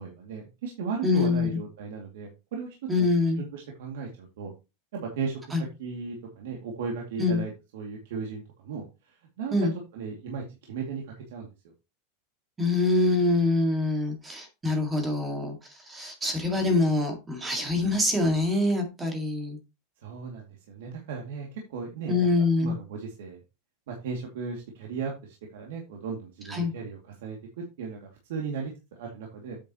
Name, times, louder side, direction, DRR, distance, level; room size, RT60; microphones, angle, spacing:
voice 1, 0.0-2.8 3.4-4.5 4.9-5.4 5.8-9.5 9.9-11.0 11.3-11.5 20.0-23.4 23.9-29.6, right 5 dB, 70° right, 0 dB, 2.4 m, -36 dB
voice 2, 1.0-1.5 2.9-3.4 5.5-5.6 7.2-7.4 9.5-9.7 12.6-15.6 15.9-19.6 22.1-22.7 26.5-26.7, left 2 dB, 10° right, 4 dB, 2.0 m, -25 dB
8.7 x 7.4 x 3.0 m, 0.26 s
supercardioid pair, 170°, 0 cm